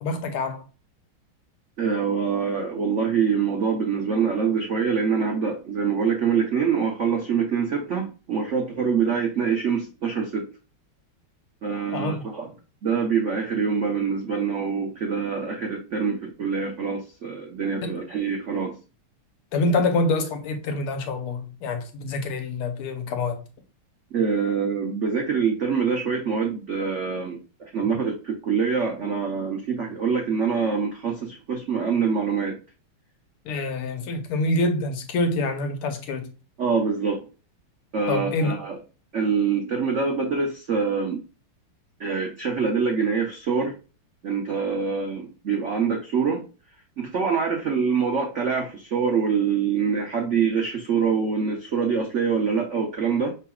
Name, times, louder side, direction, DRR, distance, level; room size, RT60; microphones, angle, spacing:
voice 1, 0.0-0.6 11.9-12.2 17.8-18.0 19.5-23.4 33.5-36.3 38.1-38.6, left 2 dB, 80° left, 1.8 m, -26 dB
voice 2, 1.8-10.5 11.6-12.5 12.8-18.8 24.1-32.6 36.6-37.2 37.9-38.8 39.1-41.2 42.0-43.8 44.2-46.5 47.0-53.3, right 6 dB, 70° right, 0.6 m, -25 dB
5.8 x 3.9 x 2.3 m
omnidirectional pair, 2.4 m